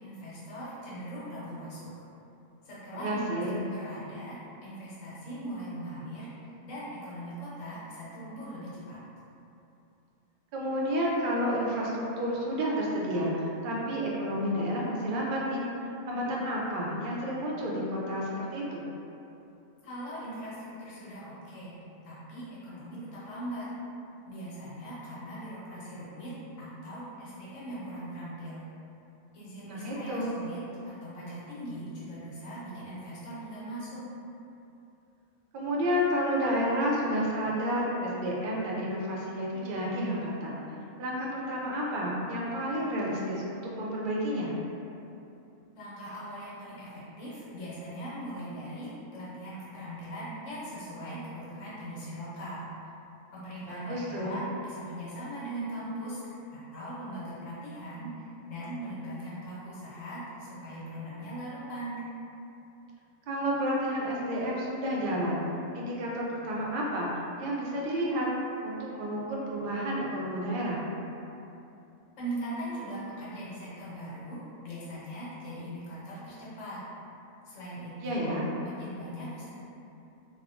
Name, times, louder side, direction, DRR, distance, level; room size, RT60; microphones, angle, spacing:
voice 1, 0.0-1.9 2.6-9.0 19.8-21.7 22.0-23.7 24.3-28.6 29.3-34.1 45.8-52.7 53.3-62.0 72.2-76.8 77.4-78.4 78.6-79.5, right 1 dB, 75° left, -8 dB, 1.1 m, -40 dB
voice 2, 2.9-3.5 10.5-18.8 29.7-30.3 35.5-40.6 41.0-44.5 53.7-54.4 63.3-65.4 65.7-67.1 67.4-68.3 68.6-70.8 78.0-78.5, equal, 65° right, -4 dB, 0.5 m, -30 dB
2.9 x 2.0 x 2.5 m, 2.8 s
omnidirectional pair, 1.3 m